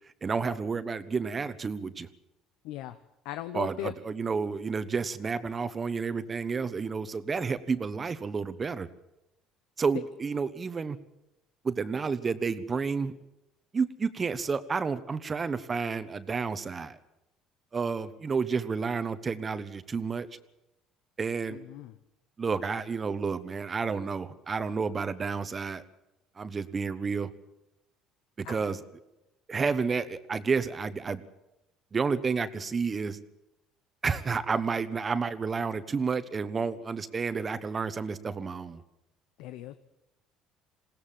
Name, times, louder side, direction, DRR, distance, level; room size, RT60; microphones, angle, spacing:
voice 1, 0.2-2.1 3.5-8.9 9.8-11.0 11.6-13.1 13.7-17.0 17.7-20.3 21.2-21.6 22.4-25.8 26.4-27.3 28.4-28.8 29.5-31.2 31.9-33.2 34.0-38.8, right 5 dB, 30° right, 13 dB, 1.1 m, -30 dB
voice 2, 2.6-3.0 3.2-3.9 21.5-21.9 28.5-28.7 39.4-39.7, left 13 dB, 80° left, 11 dB, 0.8 m, -38 dB
21.0 x 17.0 x 7.5 m, 0.89 s
supercardioid pair, 100°, 0 cm